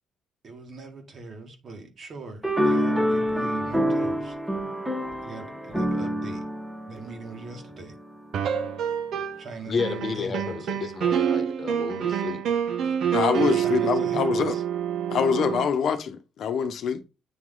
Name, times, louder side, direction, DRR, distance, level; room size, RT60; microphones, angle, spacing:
voice 1, 0.4-4.4 5.2-6.4 6.9-7.9 9.4-10.7 13.4-14.6, right 3 dB, 50° right, 1.8 m, -40 dB
sound 1, 2.4-8.0, equal, 5° right, 1.1 m, -27 dB
sound 2, 8.3-9.5 9.8-15.7, right 9 dB, 75° right, 0.9 m, -27 dB
voice 2, 9.7-12.4, left 5 dB, 45° left, 1.0 m, -31 dB
voice 3, 13.1-14.6 15.1-17.0, left 7 dB, 70° left, 0.8 m, -25 dB
8.7 x 3.1 x 3.7 m
cardioid pair, 90°, 0 cm